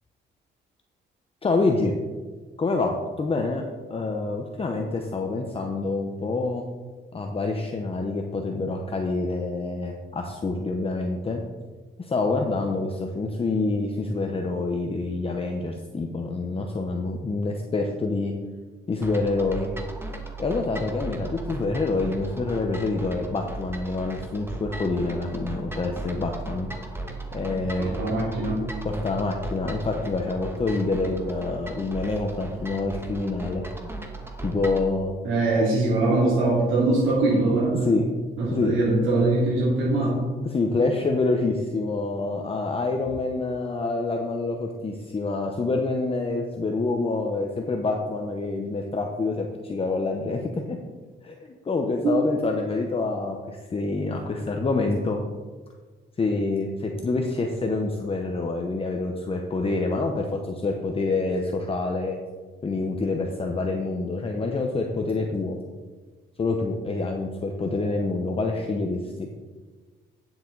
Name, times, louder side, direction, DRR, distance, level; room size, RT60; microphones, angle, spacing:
voice 1, 1.4-1.9 2.6-6.6 7.1-11.4 12.0-18.3 18.9-19.7 20.4-26.7 27.3-28.0 28.8-33.7 34.4-35.1 35.6-35.7 37.8-38.1 38.5-38.8 40.0-40.1 40.5-50.8 51.2-55.2 56.2-62.2 62.6-65.6 66.4-69.3, left 3 dB, 30° left, 2 dB, 0.9 m, -27 dB
sound 1, 19.0-34.9, right 2 dB, 10° right, 1.3 m, -36 dB
voice 2, 27.8-28.6 35.2-37.9 38.4-40.2 52.0-52.1, right 2 dB, 85° right, -7 dB, 2.7 m, -22 dB
9.4 x 7.1 x 4.0 m, 1.4 s
cardioid pair, 90°, 20 cm